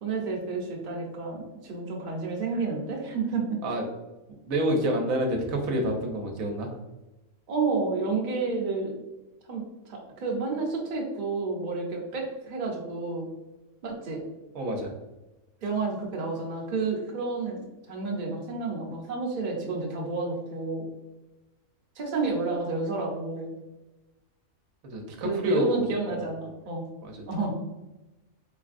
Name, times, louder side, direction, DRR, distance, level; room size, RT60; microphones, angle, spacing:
voice 1, 0.0-3.6 7.5-8.9 9.5-13.3 13.8-14.2 15.6-17.6 17.9-20.9 22.0-23.5 25.2-26.8 27.3-27.6, right 3 dB, 40° right, -1 dB, 0.7 m, -30 dB
voice 2, 4.4-6.7 14.5-14.9 24.8-26.3 27.0-27.1, equal, 75° right, 2 dB, 1.1 m, -28 dB
4.0 x 3.3 x 2.4 m, 1.0 s
omnidirectional pair, 1.5 m